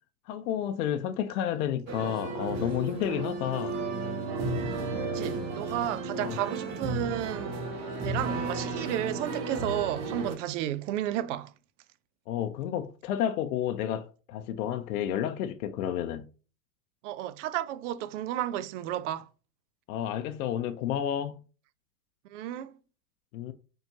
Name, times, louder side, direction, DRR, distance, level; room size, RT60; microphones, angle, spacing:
voice 1, 0.3-3.8 6.2-6.4 12.3-16.3 19.9-21.4 23.3-23.5, left 10 dB, 60° left, 0.6 m, -31 dB
sound 1, 1.9-10.3, right 3 dB, 30° right, 1.1 m, -33 dB
voice 2, 5.0-7.6 8.0-11.5 17.0-19.3 22.3-22.8, right 12 dB, 50° right, 0.5 m, -32 dB
4.2 x 3.7 x 2.7 m
hypercardioid pair, 125°, 48 cm